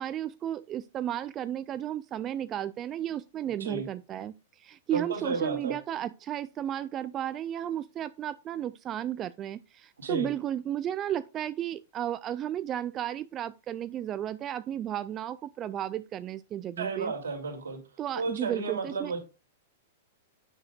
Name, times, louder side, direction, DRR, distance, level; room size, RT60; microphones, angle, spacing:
voice 1, 0.0-17.1 18.0-19.1, right 11 dB, 25° right, 0.3 m, -34 dB
voice 2, 4.9-5.8 10.0-10.3 16.8-17.8 18.1-19.2, right 4 dB, 70° right, 2.4 m, -32 dB
9.8 x 6.3 x 2.3 m
figure-of-eight pair, 100°, 0 cm